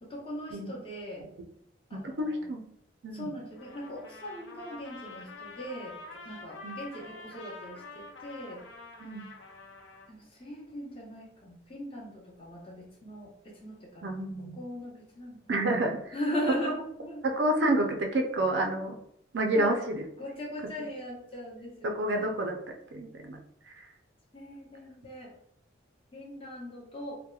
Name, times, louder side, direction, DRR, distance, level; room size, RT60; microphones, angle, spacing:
voice 1, 0.0-1.3 1.9-2.4 3.1-8.6 10.1-14.2 14.5-15.6 16.1-17.2 19.5-19.8 20.2-22.3 24.3-25.3 26.1-27.2, equal, 30° left, -4 dB, 0.7 m, -39 dB
voice 2, 1.9-2.6 3.0-3.3 6.6-6.8 9.0-9.3 14.0-14.6 15.5-16.1 17.2-19.0 19.3-20.0 21.8-22.6 22.9-23.4 23.7-23.8, right 1 dB, 65° right, 3 dB, 0.4 m, -29 dB
Trumpet, 3.5-10.1, left 3 dB, 70° left, 0.5 m, -47 dB
2.8 x 2.1 x 2.3 m, 0.70 s
head